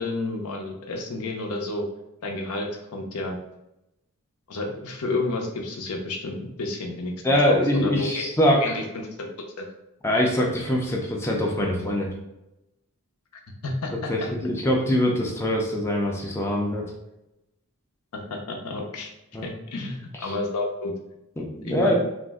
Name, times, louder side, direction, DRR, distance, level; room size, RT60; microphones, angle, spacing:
voice 1, 0.0-1.9 2.2-3.4 4.5-7.1 7.4-8.3 8.6-9.3 9.6-9.7 13.6-14.1 18.1-19.1 19.4-20.9 21.6-21.9, left 2 dB, 85° left, 1 dB, 0.6 m, -30 dB
voice 2, 7.2-8.6 10.0-12.1 14.1-16.8 19.3-19.5 20.2-20.3 21.4-21.9, left 1 dB, 10° left, -1 dB, 0.4 m, -23 dB
2.5 x 2.0 x 3.5 m, 0.90 s
head